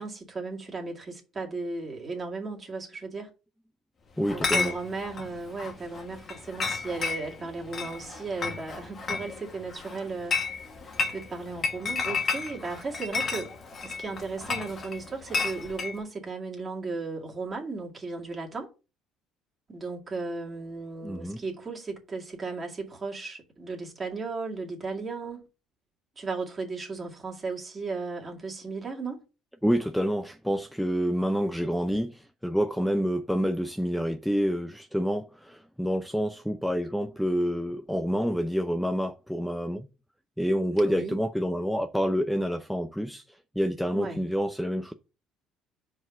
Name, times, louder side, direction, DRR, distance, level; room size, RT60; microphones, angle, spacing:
voice 1, 0.0-3.3 4.3-10.3 10.8-13.5 13.8-18.7 19.7-25.5 26.2-29.2 40.8-41.2 43.9-44.2, right 3 dB, 30° right, 2.1 m, -35 dB
Chatter / Chink clink, 4.2-15.9, left 4 dB, 40° left, 1.4 m, -33 dB
voice 2, 4.2-4.7 21.0-21.4 29.6-39.9 40.4-44.9, equal, ahead, 0.5 m, -28 dB
4.8 x 4.0 x 5.8 m
supercardioid pair, 90°, 0 cm